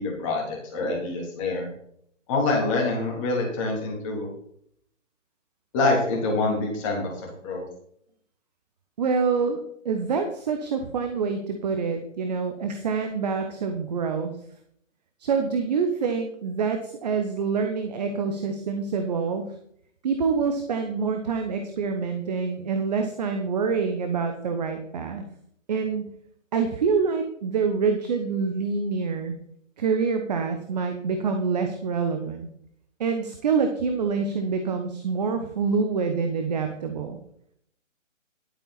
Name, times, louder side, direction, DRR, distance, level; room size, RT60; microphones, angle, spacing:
voice 1, 0.0-1.7 2.3-4.3 5.7-7.1 7.4-7.7, left 3 dB, 25° left, -1 dB, 3.2 m, -25 dB
voice 2, 9.0-14.4 15.2-19.5 20.0-25.2 25.7-26.1 26.5-29.3 29.8-32.5 33.0-37.2, right 5 dB, 30° right, 6 dB, 1.0 m, -26 dB
11.5 x 8.6 x 4.1 m, 0.69 s
figure-of-eight pair, 135°, 39 cm